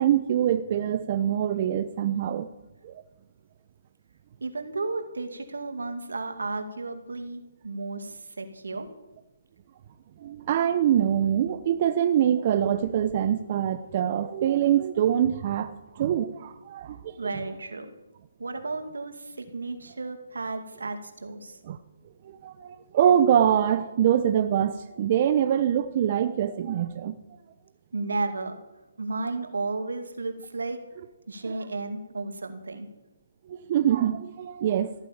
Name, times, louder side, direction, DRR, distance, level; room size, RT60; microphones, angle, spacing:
voice 1, 0.0-2.5 2.8-3.0 10.2-17.3 21.6-21.8 22.2-27.2 33.5-34.9, right 10 dB, 40° right, 10 dB, 0.8 m, -24 dB
voice 2, 4.4-8.9 17.2-17.9 18.4-21.6 27.9-28.6 29.0-30.8 31.3-32.9, right 3 dB, 85° right, 7 dB, 2.3 m, -33 dB
14.5 x 9.1 x 8.7 m, 1.1 s
hypercardioid pair, 150°, 0 cm